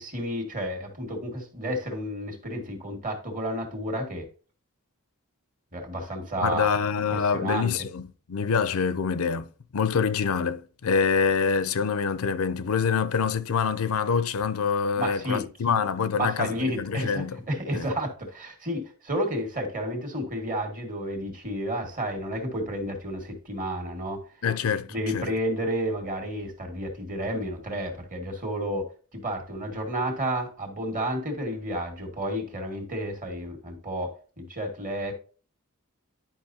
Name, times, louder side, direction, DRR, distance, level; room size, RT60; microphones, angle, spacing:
voice 1, 0.0-4.3 5.7-7.8 15.0-15.8 16.1-24.2 24.9-28.9 29.1-35.1, equal, 40° right, 1.9 m, -31 dB
voice 2, 6.4-9.5 9.7-17.4 17.7-17.9 24.4-24.9 25.1-25.3, left 6 dB, 70° left, 0.5 m, -26 dB
10.5 x 5.4 x 2.7 m
head